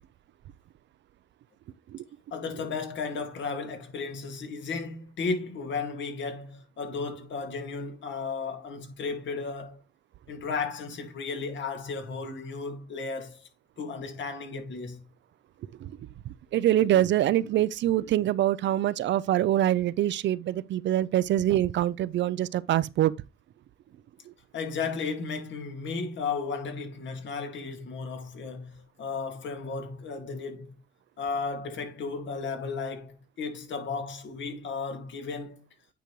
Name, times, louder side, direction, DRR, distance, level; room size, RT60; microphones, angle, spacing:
voice 1, 2.3-9.8 10.3-13.5 13.8-15.0 24.5-30.7 31.2-35.6, left 4 dB, 70° left, 2.1 m, -34 dB
voice 2, 16.3-23.1 24.3-24.4, right 12 dB, 65° right, 0.5 m, -25 dB
9.1 x 5.1 x 3.1 m
cardioid pair, 90°, 20 cm